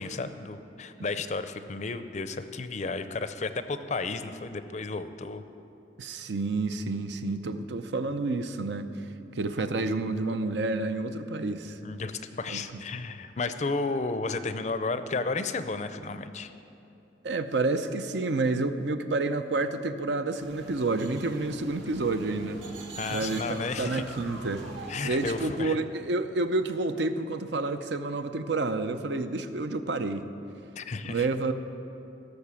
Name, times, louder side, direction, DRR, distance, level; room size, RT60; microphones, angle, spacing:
voice 1, 0.0-5.4 11.8-12.1 12.4-16.5 23.0-24.0 24.9-25.8 30.8-31.3, left 3 dB, 40° left, 11 dB, 0.5 m, -33 dB
voice 2, 6.0-9.0 9.3-11.8 12.5-12.6 17.2-22.6 23.1-24.7 25.0-30.3 31.0-31.5, right 3 dB, 70° right, 9 dB, 0.6 m, -29 dB
sound 1, 20.4-25.5, right 2 dB, 85° right, 1.9 m, -43 dB
16.5 x 6.7 x 7.1 m, 2.8 s
head